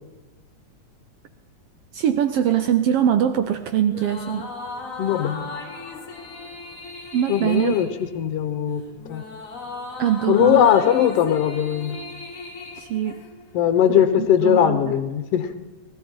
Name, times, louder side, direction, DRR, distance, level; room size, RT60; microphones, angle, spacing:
voice 1, 1.9-4.5 7.1-7.8 10.0-10.7 12.8-13.2 13.9-14.9, right 10 dB, 80° right, 8 dB, 1.3 m, -22 dB
sound 1, 3.9-13.6, left 3 dB, 45° left, 1.1 m, -37 dB
voice 2, 5.0-5.5 7.3-7.9 8.1-8.8 9.1-9.2 10.3-12.0 13.5-15.6, left 10 dB, 70° left, 9 dB, 1.6 m, -19 dB
19.0 x 14.0 x 4.4 m, 1.1 s
omnidirectional pair, 3.4 m